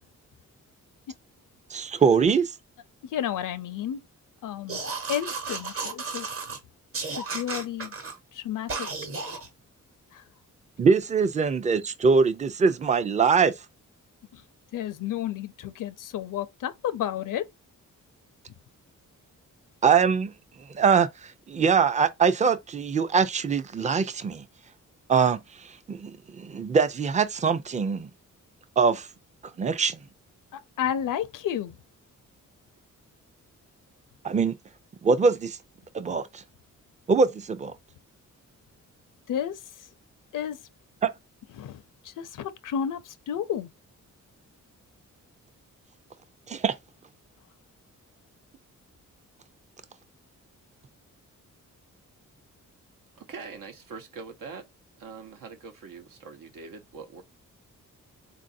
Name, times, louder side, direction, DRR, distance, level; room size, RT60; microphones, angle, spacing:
voice 1, 1.7-2.5 10.8-13.6 19.8-20.3 20.6-24.5 25.1-28.1 28.8-29.1 29.6-30.0 34.2-34.6 35.0-35.6 35.9-36.4 37.1-37.7 41.0-41.1 46.5-46.8, right 5 dB, 25° right, 0.4 m, -23 dB
voice 2, 3.0-4.0 4.4-4.8 5.1-6.3 7.2-7.9 8.3-8.9 10.1-10.2 14.3-14.4 14.7-17.5 30.5-31.8 39.3-39.6 40.3-40.6 41.6-43.7, left 10 dB, 75° left, 0.5 m, -31 dB
sound 1, 4.7-6.6 6.9-8.1 8.7-9.5, right 4 dB, 45° right, 1.0 m, -33 dB
voice 3, 53.2-54.7 55.0-57.2, right 5 dB, 85° right, 1.0 m, -43 dB
3.9 x 2.5 x 2.6 m
wide cardioid pair, 115°, 32 cm